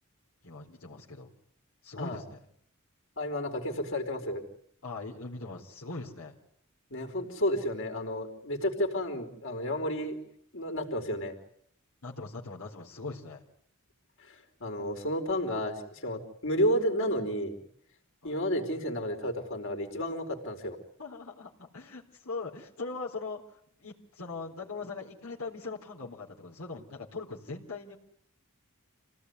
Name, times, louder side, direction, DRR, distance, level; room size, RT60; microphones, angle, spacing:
voice 1, 0.4-1.3 1.8-2.5 4.8-6.3 12.0-13.4 18.2-18.4 21.0-23.4 23.8-28.0, left 3 dB, 90° left, -3 dB, 4.1 m, -40 dB
voice 2, 3.2-4.4 6.9-10.2 10.5-11.4 14.2-17.6 18.2-20.8, equal, 65° left, 4 dB, 4.7 m, -31 dB
28.0 x 18.0 x 9.7 m, 0.69 s
head